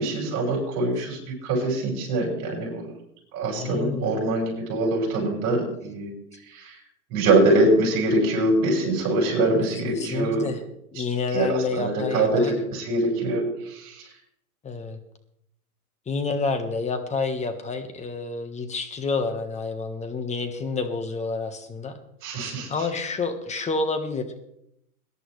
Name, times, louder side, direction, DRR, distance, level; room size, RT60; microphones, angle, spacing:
voice 1, 0.0-2.9 3.3-6.1 6.5-6.7 7.1-10.5 11.3-12.4 12.7-14.0 22.2-22.7, right 2 dB, 40° right, -1 dB, 6.7 m, -23 dB
voice 2, 3.4-4.1 9.7-10.6 10.9-12.5 14.6-15.0 16.1-22.0 22.4-24.3, left 4 dB, 15° left, 7 dB, 1.5 m, -29 dB
21.5 x 11.0 x 3.3 m, 0.77 s
hypercardioid pair, 125°, 46 cm